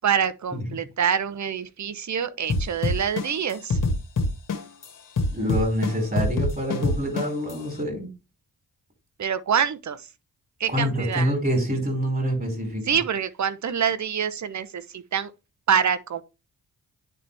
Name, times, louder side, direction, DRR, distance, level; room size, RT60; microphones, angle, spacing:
voice 1, 0.0-3.8 9.2-10.1 10.6-11.3 12.9-15.3 15.7-16.2, right 7 dB, 50° right, 0.9 m, -26 dB
sound 1, 2.5-4.8 5.2-7.5, left 2 dB, 60° left, 1.9 m, -24 dB
voice 2, 5.3-8.1 10.7-12.8, equal, 25° right, 5.0 m, -26 dB
9.6 x 4.1 x 3.4 m
cardioid pair, 60°, 36 cm